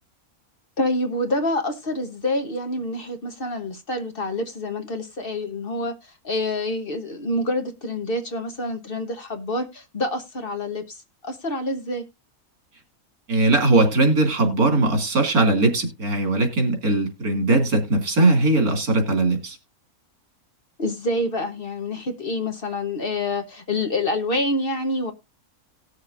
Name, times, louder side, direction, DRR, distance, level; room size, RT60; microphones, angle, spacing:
voice 1, 0.8-11.0 11.2-12.0 20.8-25.1, left 1 dB, 40° left, 1.1 m, -27 dB
voice 2, 13.3-19.6, right 2 dB, 85° right, 2.8 m, -20 dB
18.5 x 6.5 x 2.5 m
omnidirectional pair, 1.5 m